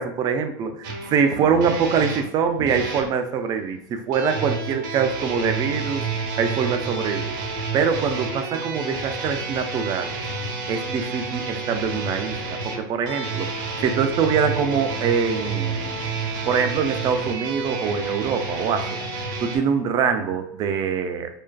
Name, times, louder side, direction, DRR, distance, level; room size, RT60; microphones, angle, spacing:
voice 1, 0.0-6.0 6.4-7.4 7.7-10.1 10.7-16.0 16.5-19.0 19.4-21.3, right 6 dB, 35° right, 7 dB, 0.3 m, -24 dB
sound 1, 0.8-3.1 4.1-19.6, right 4 dB, 70° right, 0.6 m, -30 dB
2.4 x 2.3 x 2.2 m, 0.75 s
supercardioid pair, 115°, 11 cm